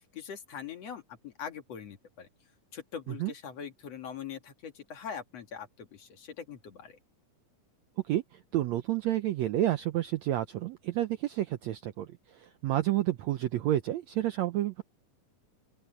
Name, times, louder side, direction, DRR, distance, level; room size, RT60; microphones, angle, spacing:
voice 1, 0.0-2.3 2.7-7.0, left 7 dB, 50° left, 2.6 m, -42 dB
voice 2, 8.1-14.8, right 14 dB, 80° right, 1.6 m, -30 dB
open air
omnidirectional pair, 4.0 m